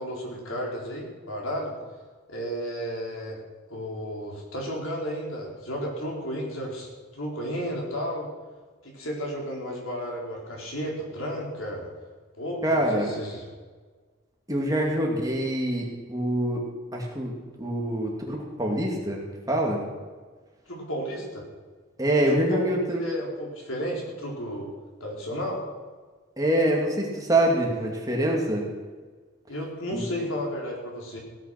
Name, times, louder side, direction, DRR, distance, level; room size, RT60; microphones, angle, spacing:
voice 1, 0.0-1.7 2.3-3.4 3.7-6.9 7.1-8.3 8.8-11.9 12.4-13.5 20.7-21.5 22.1-22.6 23.0-24.7 25.0-25.6 29.5-31.2, equal, 85° left, -2 dB, 4.4 m, -33 dB
voice 2, 12.6-13.1 14.5-16.7 16.9-19.8 22.0-23.0 26.4-28.6 29.9-30.1, right 1 dB, 15° right, -1 dB, 2.5 m, -25 dB
16.5 x 10.0 x 5.9 m, 1.4 s
head